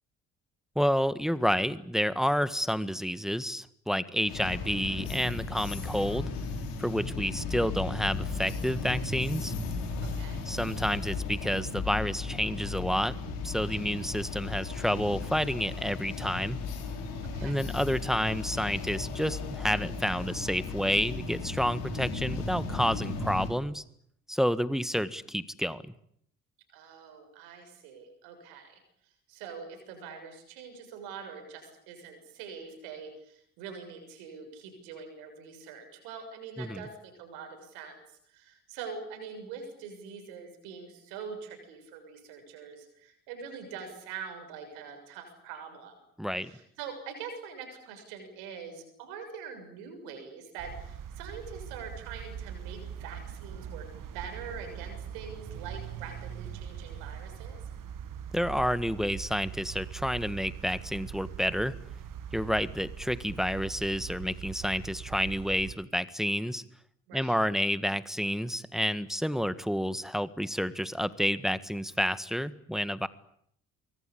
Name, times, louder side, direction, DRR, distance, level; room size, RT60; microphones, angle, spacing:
voice 1, 0.7-6.3 6.8-9.5 10.5-13.2 13.4-16.6 17.4-23.8 24.3-25.8 36.6-36.9 46.2-46.5 58.3-61.7 62.3-66.6 67.1-73.1, equal, ahead, 15 dB, 1.7 m, -29 dB
sound 1, 4.3-23.5, left 4 dB, 75° left, 5.9 m, -35 dB
voice 2, 10.0-10.4 17.2-17.6 26.7-28.8 29.3-38.0 38.3-45.9 46.4-57.6 67.1-67.4, right 6 dB, 75° right, 6 dB, 7.0 m, -44 dB
sound 2, 50.6-65.7, right 8 dB, 55° right, 2.4 m, -42 dB
24.5 x 24.0 x 8.7 m, 0.69 s
figure-of-eight pair, 45°, 39 cm